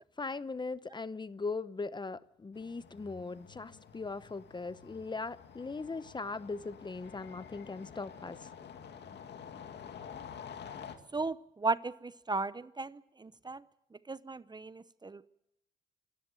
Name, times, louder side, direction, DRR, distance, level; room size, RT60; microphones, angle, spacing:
voice 1, 0.0-8.5, left 3 dB, 20° left, 0.7 m, -39 dB
sound 1, 2.5-11.0, left 7 dB, 60° left, 2.2 m, -49 dB
voice 2, 11.1-13.6 14.1-15.2, right 3 dB, 20° right, 0.7 m, -36 dB
26.0 x 13.5 x 9.0 m
cardioid pair, 90°, 20 cm